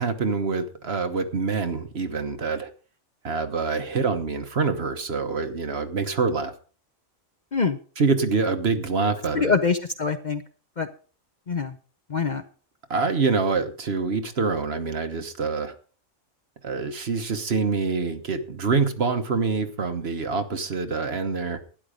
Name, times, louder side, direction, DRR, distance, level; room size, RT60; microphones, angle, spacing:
voice 1, 0.0-2.7 3.2-6.5 8.0-9.6 12.9-15.7 16.6-21.6, right 4 dB, 55° right, 8 dB, 1.3 m, -25 dB
voice 2, 9.3-10.4 10.8-10.9 11.5-11.7 12.1-12.4, left 5 dB, 40° left, 9 dB, 0.7 m, -24 dB
12.5 x 10.0 x 5.1 m, 0.39 s
omnidirectional pair, 1.4 m